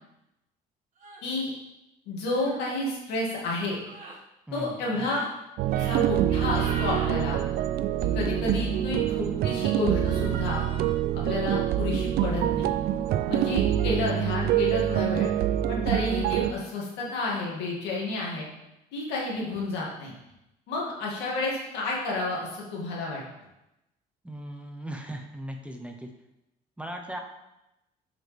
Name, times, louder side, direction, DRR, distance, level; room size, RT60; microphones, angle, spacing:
sound 1, 1.0-1.2 2.3-2.6 3.8-4.2 4.9-5.3 5.7-6.0 6.3-7.2 10.0-11.0, right 2 dB, 45° right, 1.7 m, -41 dB
voice 1, 2.1-3.8 4.5-5.2 5.7-7.4 8.0-10.6 11.1-12.7 13.3-15.3 15.7-18.5 18.9-20.2 20.7-23.2, left 2 dB, 90° left, -3 dB, 2.2 m, -30 dB
voice 2, 4.5-4.8 24.2-26.1 26.8-27.2, right 1 dB, 5° right, 3 dB, 0.8 m, -38 dB
sound 2, 5.6-16.5, right 11 dB, 70° right, 0.4 m, -26 dB
8.4 x 5.0 x 3.4 m, 0.91 s
cardioid pair, 110°, 17 cm